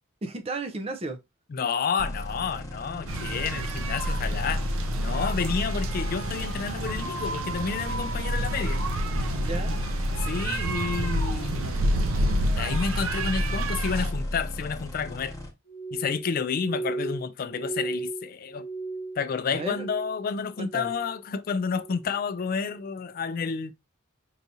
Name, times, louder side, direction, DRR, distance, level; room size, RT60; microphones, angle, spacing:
voice 1, 0.2-1.2 9.4-9.8 19.5-19.9 20.6-20.9, right 3 dB, 30° right, 0.5 m, -34 dB
voice 2, 1.5-4.6 5.0-8.8 10.2-11.9 12.6-15.3 15.9-18.6 19.2-23.7, left 6 dB, 45° left, 0.3 m, -30 dB
sound 1, 2.0-15.5, left 1 dB, 15° left, 1.0 m, -32 dB
sound 2, 3.1-14.1, right 1 dB, 75° right, 0.6 m, -29 dB
Glass, 15.7-20.3 20.5-21.2 21.6-22.1 22.7-23.0, right 3 dB, 65° left, 0.9 m, -36 dB
4.6 x 2.7 x 2.6 m
head